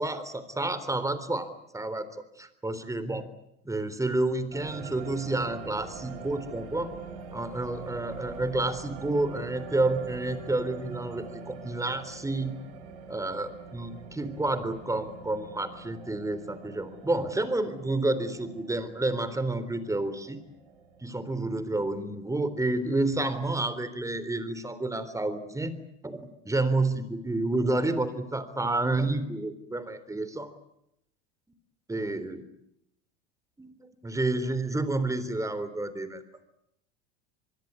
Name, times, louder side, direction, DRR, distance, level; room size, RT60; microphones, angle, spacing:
voice 1, 0.0-1.5 1.7-2.1 2.4-3.3 3.6-6.9 7.3-12.5 13.1-20.4 21.0-25.7 26.0-30.5 31.9-32.4 33.6-36.2, right 2 dB, 10° right, 13 dB, 3.7 m, -30 dB
sound 1, 4.5-21.1, right 5 dB, 65° right, 6.3 m, -44 dB
24.0 x 22.0 x 9.7 m, 0.79 s
hypercardioid pair, 85°, 34 cm